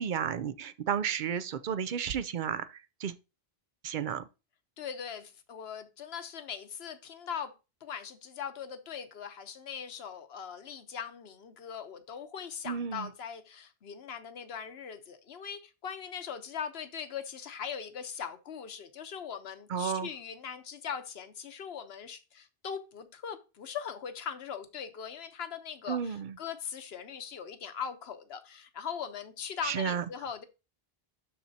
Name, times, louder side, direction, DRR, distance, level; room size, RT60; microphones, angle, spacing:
voice 1, 0.0-2.7 3.0-3.1 3.8-4.2 12.7-13.1 19.7-20.1 25.9-26.3 29.6-30.0, right 8 dB, 60° right, 0.6 m, -32 dB
voice 2, 4.8-7.5 7.8-30.4, left 7 dB, 75° left, 1.1 m, -40 dB
12.0 x 4.2 x 2.7 m
omnidirectional pair, 1.1 m